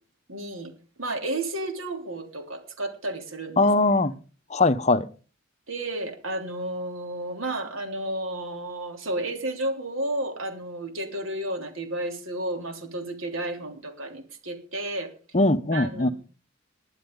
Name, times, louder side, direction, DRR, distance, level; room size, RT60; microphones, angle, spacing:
voice 1, 0.3-0.7 1.0-3.7 5.7-15.1 15.7-16.1, right 1 dB, 70° right, 3.3 m, -32 dB
voice 2, 3.6-4.1 4.5-5.1 15.3-16.1, left 2 dB, 35° left, 0.8 m, -21 dB
19.5 x 11.5 x 3.9 m
head